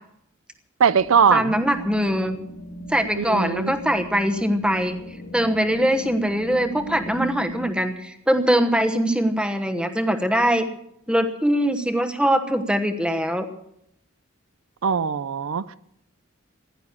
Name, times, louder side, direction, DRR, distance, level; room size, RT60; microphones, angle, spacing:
voice 1, 0.8-1.5 3.1-3.7 14.8-15.7, right 6 dB, 75° right, 0.5 m, -20 dB
sound 1, 1.0-7.7, equal, 65° left, 2.2 m, -38 dB
voice 2, 1.3-2.4 2.9-5.0 5.3-10.7 11.1-13.5, equal, 5° right, 1.1 m, -22 dB
15.5 x 11.0 x 7.1 m
head